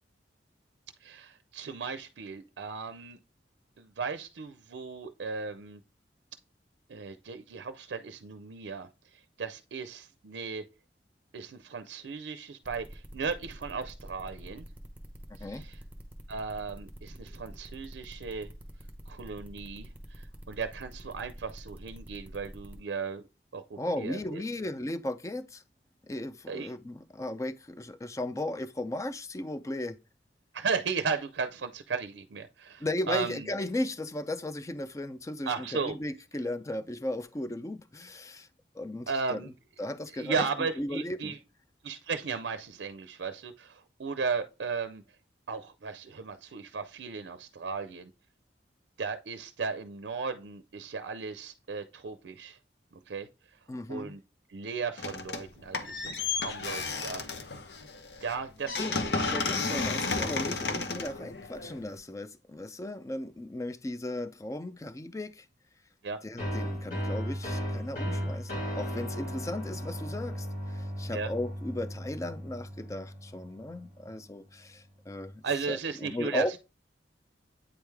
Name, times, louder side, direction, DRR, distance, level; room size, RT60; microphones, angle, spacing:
voice 1, 1.0-3.2 3.8-5.8 6.9-10.6 11.3-14.7 15.4-15.8 16.3-18.5 19.1-23.2 23.5-24.4 26.5-26.7 30.5-33.5 35.5-36.0 39.1-39.5 40.1-41.4 41.8-45.0 45.5-48.1 49.0-52.6 53.1-53.3 53.9-54.2 54.5-57.2 58.2-58.8 59.0-59.3 66.0-66.2 71.1-71.3 75.4-76.6, right 5 dB, 90° right, 0.5 m, -36 dB
sound 1, 12.6-22.8, equal, 10° right, 0.9 m, -47 dB
voice 2, 15.3-15.7 23.8-25.6 26.0-30.0 32.8-38.5 38.7-39.5 39.8-41.4 53.7-54.2 58.8-59.0 59.3-65.4 66.2-76.6, left 1 dB, 20° left, 0.4 m, -36 dB
sound 2, 55.0-55.5 55.7-62.0, left 4 dB, 70° left, 0.8 m, -33 dB
sound 3, 66.4-73.8, equal, 50° left, 2.2 m, -35 dB
8.6 x 3.2 x 3.4 m
head